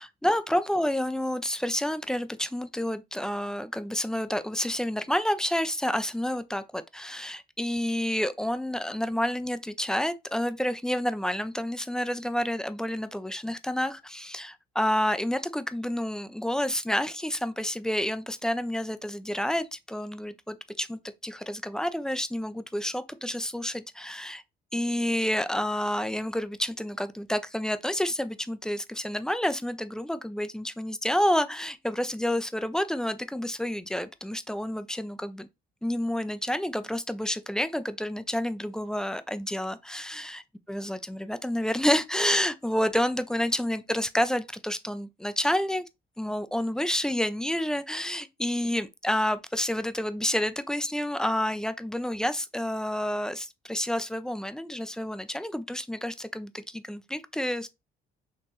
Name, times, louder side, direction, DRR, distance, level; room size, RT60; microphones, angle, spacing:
voice 1, 0.0-24.4 24.7-35.5 35.8-40.4 40.7-45.8 46.2-57.7, left 1 dB, 5° left, 0.4 m, -29 dB
4.4 x 3.0 x 3.0 m
cardioid pair, 110°, 17 cm